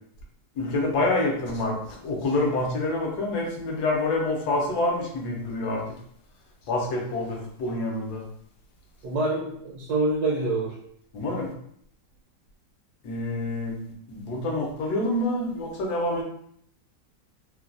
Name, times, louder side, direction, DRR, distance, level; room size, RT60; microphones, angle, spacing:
voice 1, 0.5-5.8 6.7-8.2 11.1-11.5 13.0-16.2, left 2 dB, 70° left, -1 dB, 1.1 m, -27 dB
voice 2, 9.0-10.7, right 2 dB, 75° right, -5 dB, 1.2 m, -26 dB
3.2 x 2.2 x 2.4 m, 0.70 s
omnidirectional pair, 1.9 m